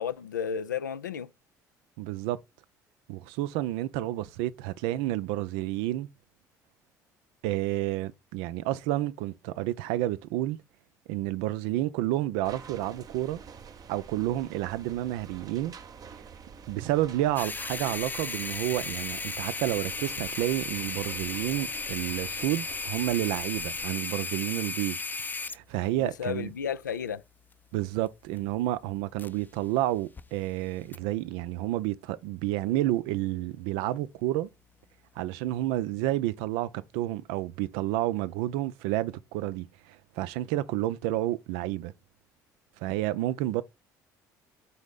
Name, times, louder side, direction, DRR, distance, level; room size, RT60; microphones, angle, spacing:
voice 1, 0.0-1.3 26.0-27.2, left 7 dB, 85° left, 0.4 m, -33 dB
voice 2, 2.0-2.4 3.1-6.1 7.4-10.6 11.1-13.4 13.9-15.7 16.7-25.0 25.4-26.5 27.7-34.5 35.2-41.9 42.8-43.6, right 15 dB, 65° right, 0.5 m, -30 dB
sound 1, 12.4-23.9, right 6 dB, 40° right, 0.8 m, -48 dB
sound 2, 17.4-29.7 29.9-30.2 30.9-31.0, left 4 dB, 20° left, 0.6 m, -36 dB
4.6 x 4.2 x 4.9 m
figure-of-eight pair, 55°, 10 cm